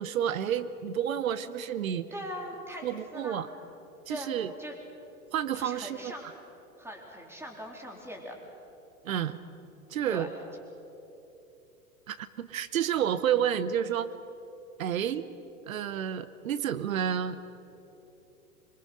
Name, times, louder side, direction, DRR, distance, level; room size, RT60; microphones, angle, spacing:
voice 1, 0.0-2.1 2.8-3.5 4.1-4.5 5.3-6.1 9.0-9.4 9.9-10.3 12.1-14.1 14.8-15.3 15.7-17.5, right 9 dB, 65° right, 14 dB, 1.0 m, -30 dB
voice 2, 2.1-2.8 3.1-3.4 4.1-4.8 5.5-6.3 6.8-8.4 10.1-10.3, equal, 5° right, 1 dB, 3.8 m, -41 dB
25.0 x 23.0 x 6.5 m, 3.0 s
figure-of-eight pair, 95°, 44 cm